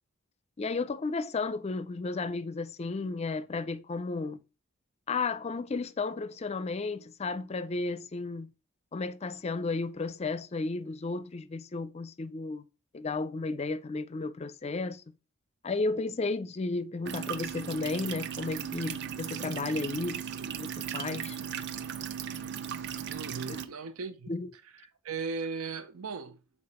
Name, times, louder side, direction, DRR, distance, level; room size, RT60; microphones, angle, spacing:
voice 1, 0.6-4.4 5.1-8.5 8.9-12.6 12.9-15.0 15.6-20.2 20.6-21.4 23.5-23.6 24.3-24.5, left 3 dB, 30° left, 0.4 m, -33 dB
sound 1, 17.0-23.6, right 8 dB, 55° right, 0.5 m, -37 dB
voice 2, 23.1-24.3 24.7-26.4, right 4 dB, 85° right, 0.7 m, -37 dB
6.8 x 4.2 x 4.2 m
head